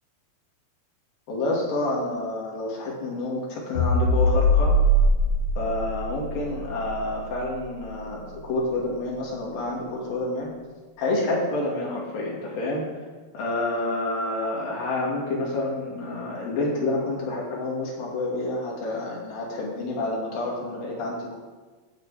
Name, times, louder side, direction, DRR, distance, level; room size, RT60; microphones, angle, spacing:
voice 1, 1.3-4.7 5.6-10.5 11.0-12.9 13.3-21.4, left 2 dB, 85° left, -4 dB, 4.3 m, -28 dB
sound 1, 3.8-8.2, equal, 35° left, 5.5 m, -23 dB
15.5 x 8.1 x 5.1 m, 1.3 s
omnidirectional pair, 4.0 m